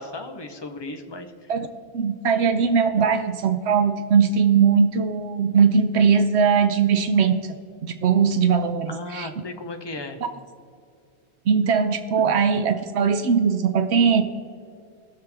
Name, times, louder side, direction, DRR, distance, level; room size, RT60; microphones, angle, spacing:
voice 1, 0.0-1.5 8.9-10.2, left 2 dB, 25° left, 5 dB, 0.9 m, -35 dB
voice 2, 1.9-7.4 7.8-9.3 11.5-14.2, right 6 dB, 80° right, 9 dB, 0.9 m, -20 dB
19.0 x 6.7 x 3.5 m, 2.3 s
omnidirectional pair, 1.1 m